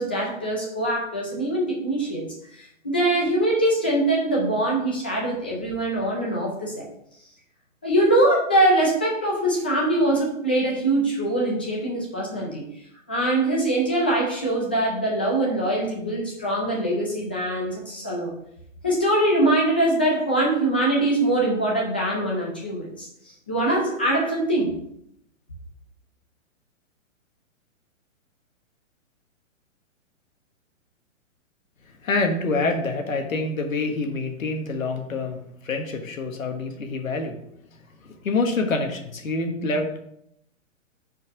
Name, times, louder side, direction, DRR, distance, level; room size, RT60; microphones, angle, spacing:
voice 1, 0.0-2.3 2.8-6.9 7.8-12.7 13.1-18.3 18.8-23.1 23.5-24.8, right 1 dB, 10° left, -3 dB, 0.3 m, -23 dB
voice 2, 31.8-37.4 38.0-40.0, left 3 dB, 90° left, 5 dB, 1.5 m, -26 dB
6.0 x 4.5 x 5.8 m, 0.73 s
hypercardioid pair, 150°, 39 cm